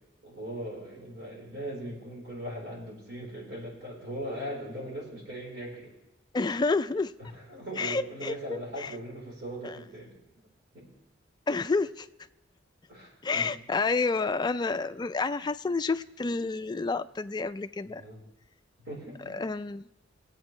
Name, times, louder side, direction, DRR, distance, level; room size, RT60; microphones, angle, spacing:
voice 1, 0.2-5.9 7.2-10.1 10.7-10.9 12.9-13.5 17.8-18.2 18.8-19.4, right 1 dB, 70° right, 4.2 m, -39 dB
voice 2, 6.3-7.1 7.8-9.0 9.6-9.8 11.5-12.1 13.2-18.0 19.3-19.9, left 3 dB, 20° left, 0.3 m, -29 dB
21.5 x 8.1 x 3.2 m
head